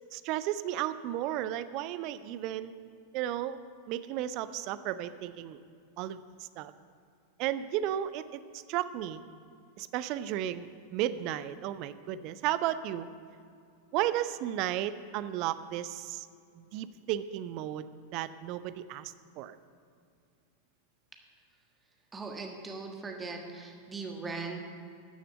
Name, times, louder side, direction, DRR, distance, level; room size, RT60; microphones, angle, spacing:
voice 1, 0.1-2.7 3.1-3.6 3.9-5.6 6.0-6.7 7.4-9.2 9.8-13.1 13.9-16.3 16.6-17.9 18.1-19.6, right 12 dB, 40° right, 14 dB, 0.5 m, -34 dB
voice 2, 22.1-24.6, right 4 dB, 15° right, 2 dB, 1.5 m, -39 dB
13.0 x 6.8 x 7.0 m, 2.5 s
figure-of-eight pair, 90°, 0 cm